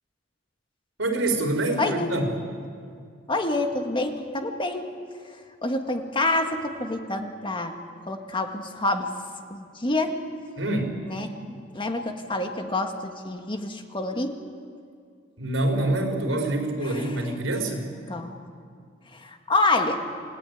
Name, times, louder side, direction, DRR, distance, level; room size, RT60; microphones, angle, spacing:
voice 1, 1.0-2.4 10.6-11.0 15.4-17.9, right 2 dB, 85° right, 3 dB, 4.0 m, -26 dB
voice 2, 1.8-2.1 3.3-4.8 5.6-7.8 8.1-9.1 9.5-10.2 11.1-14.4 18.1-18.4 19.2-20.0, left 2 dB, 25° left, 5 dB, 1.7 m, -27 dB
28.5 x 17.5 x 9.3 m, 2.2 s
head